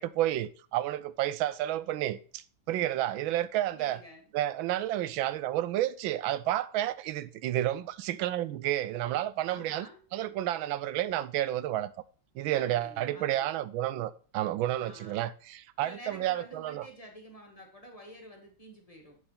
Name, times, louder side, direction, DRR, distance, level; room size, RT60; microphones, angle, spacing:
voice 1, 0.0-4.0 4.3-9.9 10.1-11.9 12.3-16.9, right 13 dB, 90° right, 1.4 m, -31 dB
voice 2, 3.7-4.3 9.5-10.0 12.5-13.5 14.8-15.2 15.8-19.2, equal, 20° left, 2.1 m, -49 dB
8.0 x 6.2 x 5.7 m
omnidirectional pair, 2.1 m